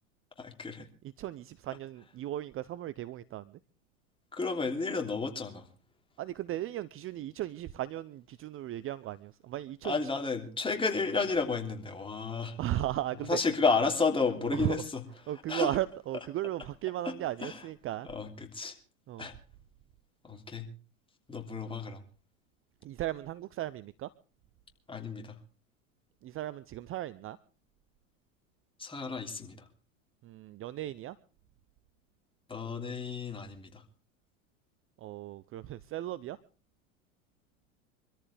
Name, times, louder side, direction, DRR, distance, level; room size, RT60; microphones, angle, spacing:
voice 1, 0.4-0.9 4.3-5.7 9.8-12.6 13.3-14.8 15.5-15.7 17.0-17.1 17.4-17.6 18.0-18.7 19.2-19.3 20.2-20.7 21.3-22.0 24.9-25.4 28.8-29.7 32.5-33.8, left 4 dB, 15° left, 3 dB, 3.2 m, -32 dB
voice 2, 1.0-3.6 6.2-10.1 12.6-13.4 14.5-14.8 15.3-18.1 19.1-19.3 22.8-24.1 26.2-27.4 30.2-31.2 35.0-36.4, right 14 dB, 30° right, 17 dB, 0.7 m, -36 dB
25.0 x 14.0 x 3.5 m, 0.36 s
hypercardioid pair, 95°, 41 cm